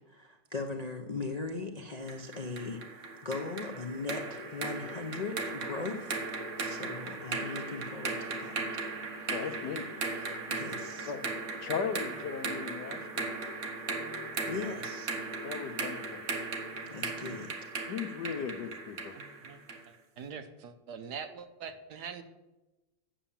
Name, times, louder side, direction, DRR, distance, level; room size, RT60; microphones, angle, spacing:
voice 1, 0.1-8.6 10.5-11.1 14.5-15.1 16.9-17.5, left 3 dB, 45° left, 3 dB, 0.5 m, -39 dB
sound 1, 2.1-19.9, right 3 dB, 45° right, 1.4 m, -37 dB
voice 2, 9.3-9.9 10.2-10.4 11.1-11.3 11.6-13.3 15.4-16.2 17.9-19.1, left 6 dB, 70° left, 10 dB, 1.3 m, -37 dB
voice 3, 19.1-19.6 19.9-22.2, right 6 dB, 65° right, 8 dB, 1.3 m, -43 dB
8.9 x 7.2 x 7.2 m, 1.0 s
omnidirectional pair, 2.0 m